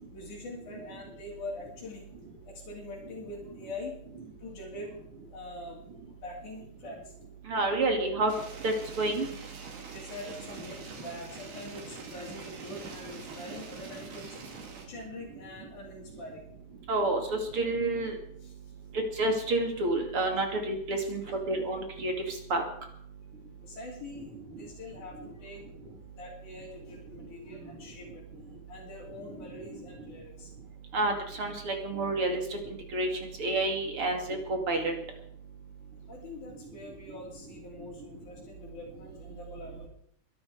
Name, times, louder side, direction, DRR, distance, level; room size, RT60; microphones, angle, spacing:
voice 1, 0.1-2.1 2.5-3.9 4.4-5.0 5.3-5.8 6.2-7.0 9.9-16.5 18.4-18.5 21.0-21.4 23.6-24.3 24.6-25.6 26.2-28.1 28.7-30.5 36.1-39.9, left 2 dB, 60° left, -6 dB, 4.6 m, -44 dB
voice 2, 7.5-8.3 8.6-9.3 16.9-17.2 17.5-18.1 19.2-21.2 21.5-22.1 22.5-22.6 30.9-31.1 31.4-32.4 32.9-33.1 33.4-34.9, right 2 dB, 40° right, 3 dB, 3.2 m, -28 dB
sound 1, 8.3-14.9, right 5 dB, 65° right, 4.4 m, -45 dB
22.0 x 12.0 x 4.9 m, 0.65 s
omnidirectional pair, 4.0 m